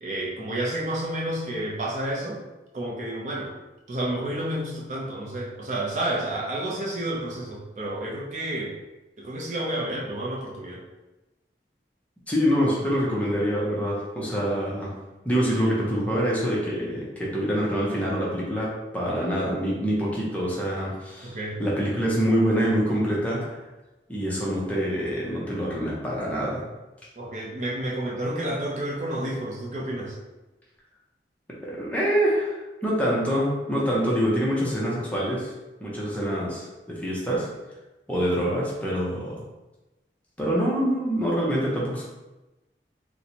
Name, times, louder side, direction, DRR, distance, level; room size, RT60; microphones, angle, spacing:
voice 1, 0.0-2.4 2.7-3.5 3.9-8.7 9.2-10.8 21.2-21.6 27.2-30.2, right 1 dB, 40° right, -3 dB, 0.5 m, -30 dB
voice 2, 12.3-14.9 15.2-23.6 24.1-26.6 31.6-35.5 35.8-37.5 38.1-39.4 40.4-42.1, equal, 10° left, -5 dB, 0.6 m, -25 dB
4.1 x 2.1 x 2.9 m, 1.1 s
head